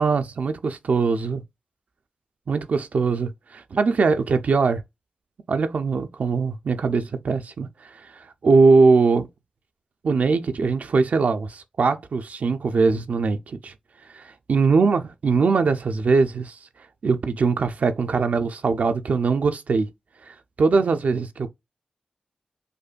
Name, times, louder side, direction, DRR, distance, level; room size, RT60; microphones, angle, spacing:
voice 1, 0.0-1.4 2.5-4.8 5.5-9.3 10.0-19.9 20.2-21.5, right 4 dB, 75° right, 0.4 m, -22 dB
5.1 x 2.2 x 2.4 m
wide cardioid pair, 70°, 3 cm